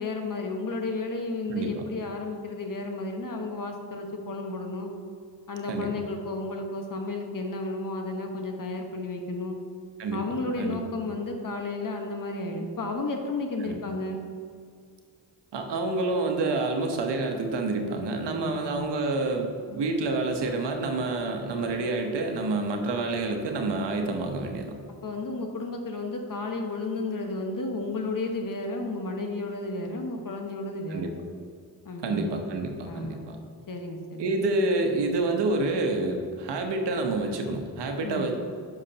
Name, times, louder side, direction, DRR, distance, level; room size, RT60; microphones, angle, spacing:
voice 1, 0.0-4.9 5.5-9.6 10.1-14.2 18.4-18.8 25.0-31.1 31.8-32.3 32.9-33.3 33.7-34.3 38.0-38.3, left 2 dB, 50° left, 3 dB, 1.3 m, -32 dB
voice 2, 1.5-1.8 5.7-5.9 10.0-10.2 10.6-10.8 13.6-13.7 15.5-24.7 30.9-31.1 32.0-33.4 34.2-38.4, right 2 dB, 85° right, 4 dB, 1.0 m, -28 dB
10.0 x 6.6 x 2.9 m, 2.2 s
cardioid pair, 60°, 41 cm